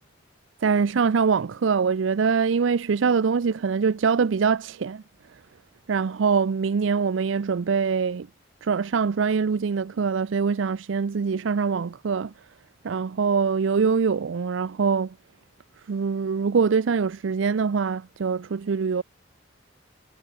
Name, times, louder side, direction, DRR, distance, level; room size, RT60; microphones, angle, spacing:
voice 1, 0.6-5.0 5.9-8.3 8.6-12.3 12.8-15.1 15.9-19.0, right 5 dB, 80° right, 0.5 m, -23 dB
head